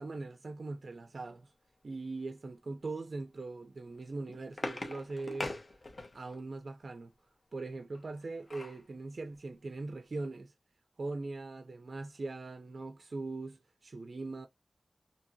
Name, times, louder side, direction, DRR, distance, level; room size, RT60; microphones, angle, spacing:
voice 1, 0.0-1.5 1.8-5.5 6.1-7.1 7.5-10.5 11.0-14.5, right 3 dB, 70° right, 0.4 m, -41 dB
sound 1, 3.9-6.4 7.9-8.8 9.3-9.4 9.7-9.9, left 2 dB, 60° left, 0.7 m, -41 dB
2.8 x 2.6 x 2.6 m
wide cardioid pair, 70°, 0 cm